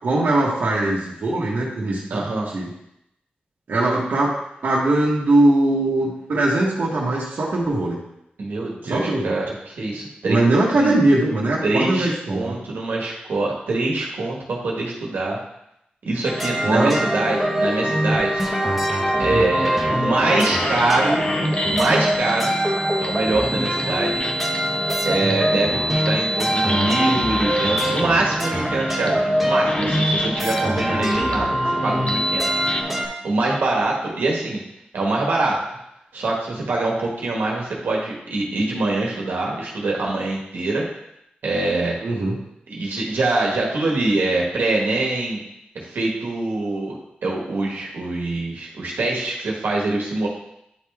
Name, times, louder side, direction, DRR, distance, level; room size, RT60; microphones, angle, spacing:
voice 1, 0.0-2.2 2.5-2.7 3.7-4.4 4.6-8.0 8.8-9.4 10.2-12.5 16.6-17.0 19.3-19.5 25.2-25.4 42.0-42.3, right 2 dB, 70° right, -5 dB, 1.2 m, -20 dB
voice 2, 2.1-2.5 8.4-11.0 11.6-15.4 16.0-18.4 19.2-21.2 21.7-22.5 23.0-24.3 25.0-32.5 33.2-34.6 34.9-35.6 36.1-40.8 41.4-42.0 42.7-45.4 45.7-50.3, right 2 dB, 90° right, -2 dB, 1.4 m, -24 dB
sound 1, 16.2-33.1, equal, ahead, 1.2 m, -24 dB
sound 2, 20.1-32.8, equal, 35° left, 0.7 m, -28 dB
9.6 x 3.3 x 3.5 m, 0.82 s
wide cardioid pair, 100°, 3 cm